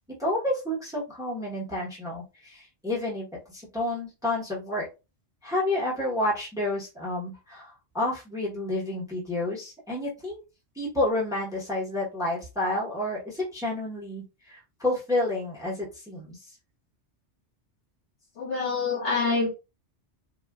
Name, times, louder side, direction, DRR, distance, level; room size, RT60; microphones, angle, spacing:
voice 1, 0.2-4.9 5.4-10.4 10.7-16.4, left 1 dB, 5° right, -4 dB, 1.0 m, -30 dB
voice 2, 18.4-19.5, left 4 dB, 70° left, -3 dB, 2.0 m, -26 dB
3.8 x 2.4 x 2.3 m, 0.28 s
omnidirectional pair, 1.2 m